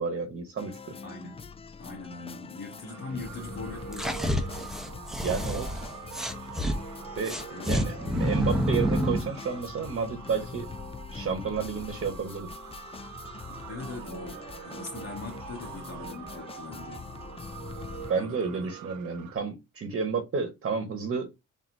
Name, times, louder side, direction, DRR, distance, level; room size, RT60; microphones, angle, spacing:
voice 1, 0.0-0.9 5.2-5.7 7.2-10.7 11.1-12.5 18.1-21.3, right 5 dB, 45° right, 1.1 m, -31 dB
sound 1, 0.6-18.1, left 5 dB, 20° left, 0.4 m, -43 dB
voice 2, 1.0-1.5 1.8-4.4 7.5-7.9 13.7-17.1 18.1-18.7, left 3 dB, 45° left, 1.6 m, -41 dB
sound 2, 2.9-19.4, right 10 dB, 80° right, 0.6 m, -45 dB
sound 3, 3.9-6.8 7.2-9.3, equal, ahead, 0.8 m, -28 dB
4.0 x 2.7 x 4.5 m
cardioid pair, 90°, 30 cm